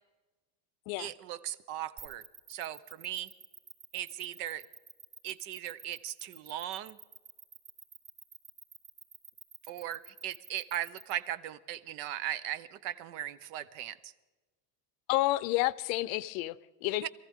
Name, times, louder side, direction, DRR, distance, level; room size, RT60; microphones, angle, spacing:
voice 1, 1.0-2.2 2.5-3.3 3.9-4.6 5.2-7.0 9.7-14.1 17.0-17.1, right 12 dB, 65° right, 0.9 m, -38 dB
sound 1, 2.0-11.1, right 5 dB, 35° right, 3.1 m, -50 dB
voice 2, 15.1-17.1, left 18 dB, 60° left, 0.6 m, -30 dB
23.0 x 15.0 x 3.6 m
cardioid pair, 160°, 48 cm